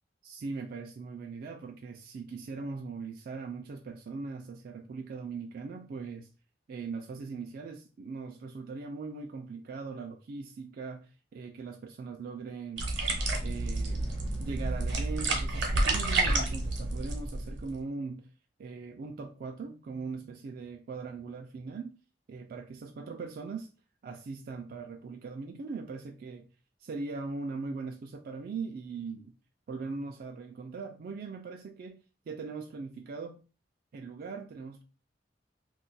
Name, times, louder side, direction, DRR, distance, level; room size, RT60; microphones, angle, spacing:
voice 1, 0.2-6.3 6.7-12.9 13.4-14.1 14.4-18.3 18.6-21.9 22.3-23.7 24.0-26.5 26.8-29.3 29.7-33.4 33.9-34.8, right 4 dB, 55° right, 0.3 m, -40 dB
sound 1, 12.8-17.8, right 2 dB, 70° right, 0.8 m, -30 dB
2.4 x 2.1 x 3.9 m
head